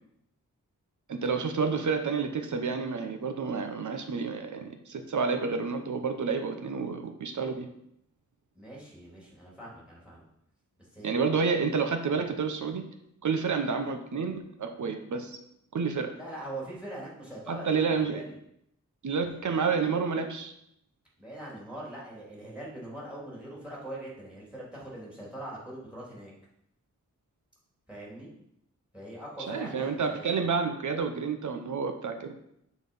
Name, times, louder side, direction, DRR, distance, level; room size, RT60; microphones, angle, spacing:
voice 1, 1.1-7.7 11.0-12.8 13.2-15.4 15.7-16.1 17.5-18.2 19.0-20.5 29.5-32.3, right 5 dB, 75° right, 6 dB, 0.9 m, -29 dB
voice 2, 8.5-10.3 10.9-11.4 16.1-18.4 19.2-19.4 21.2-26.3 27.9-28.3 28.9-30.5, right 1 dB, 5° right, -4 dB, 3.2 m, -42 dB
7.2 x 4.1 x 5.5 m, 0.76 s
wide cardioid pair, 105°, 30 cm